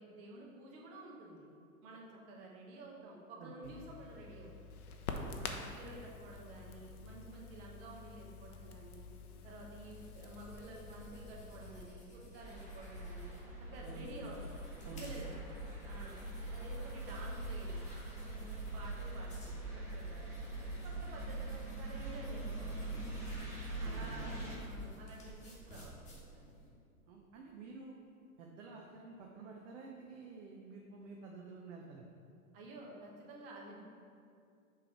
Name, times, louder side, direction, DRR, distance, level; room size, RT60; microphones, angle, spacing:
voice 1, 0.0-1.5 1.8-4.7 5.2-9.0 9.4-13.3 13.7-14.5 14.9-15.3 15.8-16.2 16.5-17.9 18.2-19.6 19.9-20.2 20.5-23.2 23.8-26.0 26.3-26.6 32.5-33.8, right 2 dB, 40° right, -2 dB, 1.2 m, -51 dB
voice 2, 3.4-3.7 13.8-14.1 14.9-15.1 23.8-24.3 27.1-27.9 28.4-32.0, right 3 dB, 55° right, 0 dB, 0.7 m, -50 dB
Crackle, 3.6-11.9, left 4 dB, 75° left, 0.8 m, -48 dB
sound 1, 9.2-26.7, right 1 dB, 15° left, 1.2 m, -55 dB
sound 2, 12.4-24.6, right 2 dB, 5° right, 1.1 m, -43 dB
6.7 x 3.3 x 4.3 m, 2.5 s
hypercardioid pair, 135°, 44 cm